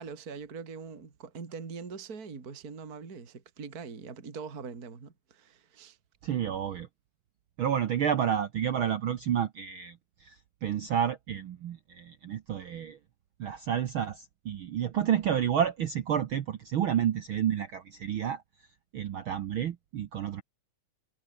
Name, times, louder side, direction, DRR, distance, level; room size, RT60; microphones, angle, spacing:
voice 1, 0.0-6.0, right 5 dB, 30° right, 2.8 m, -42 dB
voice 2, 6.2-6.9 7.6-13.0 13.4-18.4 18.9-20.4, right 9 dB, 60° right, 1.4 m, -30 dB
omnidirectional pair, 3.4 m